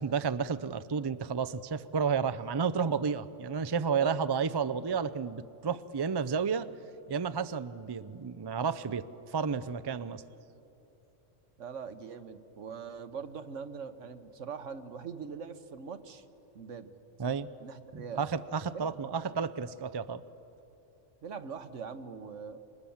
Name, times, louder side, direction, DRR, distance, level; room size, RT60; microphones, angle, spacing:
voice 1, 0.0-6.7 7.1-10.2 17.2-17.5 17.9-20.2, right 6 dB, 40° right, 12 dB, 0.3 m, -31 dB
voice 2, 11.6-16.2 16.5-16.9 17.6-18.2 18.7-19.2 21.2-22.6, right 6 dB, 70° right, 9 dB, 1.4 m, -42 dB
28.0 x 25.0 x 7.2 m, 3.0 s
omnidirectional pair, 1.3 m